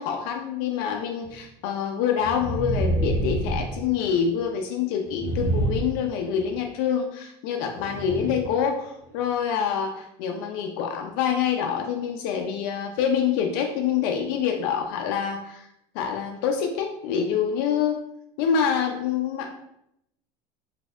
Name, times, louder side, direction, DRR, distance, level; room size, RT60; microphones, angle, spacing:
voice 1, 0.0-15.7 15.9-18.0 18.4-19.5, left 7 dB, 65° left, 3 dB, 0.4 m, -26 dB
sound 1, 1.2-1.3 2.2-4.3 5.0-6.6 7.7-8.6 9.1-9.2, right 1 dB, 85° right, 1.2 m, -28 dB
4.1 x 2.7 x 2.3 m, 0.78 s
cardioid pair, 165°, 13 cm